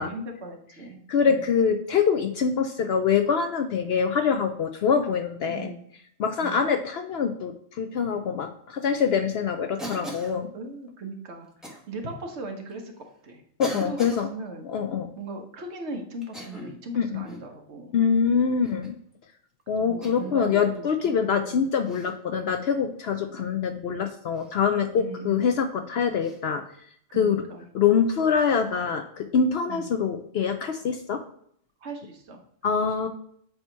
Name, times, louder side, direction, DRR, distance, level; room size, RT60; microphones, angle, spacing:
voice 1, 0.0-1.0 1.3-1.4 5.5-5.8 6.4-6.6 10.5-11.5 11.9-12.9 13.2-13.4 13.7-14.7 15.2-17.9 19.8-21.2 21.5-21.7 23.2-23.5 25.0-25.4 27.1-27.7 29.7-29.9 31.8-32.4 32.6-32.7, right 2 dB, 60° right, 3 dB, 1.2 m, -38 dB
voice 2, 1.1-5.7 6.2-10.5 13.6-14.3 14.7-15.1 17.0-17.2 17.9-19.0 19.7-26.6 27.1-27.4 27.7-31.2 32.6-33.1, left 6 dB, 65° left, 6 dB, 0.7 m, -24 dB
Cough, 9.8-10.4 11.6-11.8 12.7-12.8 13.6-14.2 16.2-16.8 17.2-17.5 18.6-19.0 20.0-20.4 21.8-22.1 24.3-24.5 26.2-26.4, equal, ahead, 1.1 m, -38 dB
7.7 x 2.9 x 4.5 m, 0.66 s
omnidirectional pair, 1.4 m